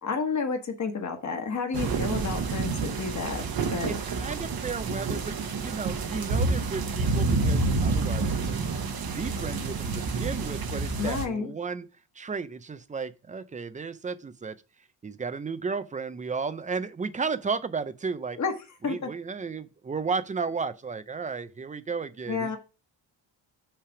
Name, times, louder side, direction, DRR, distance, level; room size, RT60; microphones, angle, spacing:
voice 1, 0.0-3.4 3.7-4.0 11.0-11.5 18.4-18.5 18.8-19.1 22.3-22.6, left 5 dB, 35° left, 1.3 m, -30 dB
sound 1, 1.7-11.2, right 3 dB, 50° right, 1.0 m, -28 dB
voice 2, 3.9-8.8 9.1-11.9 12.2-14.6 15.0-18.4 18.8-22.6, right 5 dB, 20° right, 0.4 m, -34 dB
5.9 x 3.3 x 5.8 m
cardioid pair, 135°, 46 cm